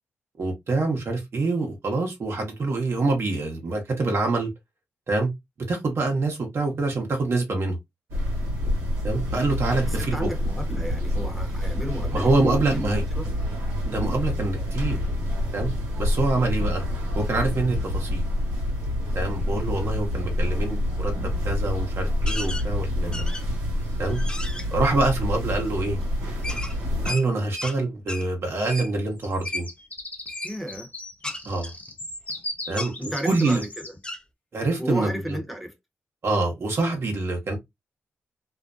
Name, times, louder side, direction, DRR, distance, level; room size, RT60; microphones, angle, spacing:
voice 1, 0.4-4.5 5.1-5.3 5.7-7.8 9.0-10.3 12.1-13.0 13.8-15.0 15.5-15.7 16.0-16.8 17.2-18.2 19.1-21.1 21.4-23.1 24.0-24.2 24.7-26.0 27.0-29.7 31.4-31.7 32.7-32.9 33.2-33.6 34.5-35.4 36.2-37.6, right 3 dB, 55° right, 0.9 m, -25 dB
sound 1, 8.1-27.1, left 1 dB, 85° right, 1.0 m, -27 dB
voice 2, 9.3-13.3 30.4-30.9 33.0-34.0 34.8-35.7, equal, ahead, 0.9 m, -33 dB
sound 2, 19.4-19.5 23.8-24.4 26.1-26.2 26.4-26.8 29.0-33.9, left 2 dB, 35° left, 1.0 m, -38 dB
sound 3, 22.3-22.7 23.1-23.6 24.1-24.7 26.4-27.8 28.1-28.3 28.7-28.9 29.5-29.7 30.3-30.5 31.2-32.4 32.7-32.9 33.4-33.7 34.0-34.2, left 1 dB, 15° left, 0.5 m, -34 dB
2.5 x 2.1 x 2.5 m
supercardioid pair, 45°, 5 cm